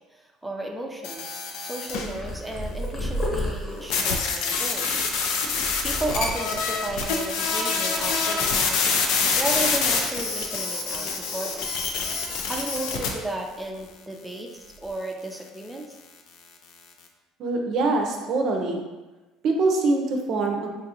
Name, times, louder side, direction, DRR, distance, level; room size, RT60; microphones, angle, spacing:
voice 1, 0.1-4.9 5.8-8.8 9.1-11.7 12.5-14.5 14.8-16.0, right 1 dB, 10° right, 0 dB, 0.5 m, -34 dB
sound 1, 1.0-2.1 3.9-13.1, left 5 dB, 70° left, 0.4 m, -26 dB
Purr, 1.9-6.8 7.3-7.8 8.1-9.3 9.7-11.8 12.0-13.3 13.6-13.9 14.6-14.9, equal, 40° left, 1.0 m, -35 dB
voice 2, 17.4-18.8 19.4-20.7, right 3 dB, 55° right, 2 dB, 0.5 m, -24 dB
3.8 x 2.4 x 2.8 m, 1.2 s
supercardioid pair, 85°, 0 cm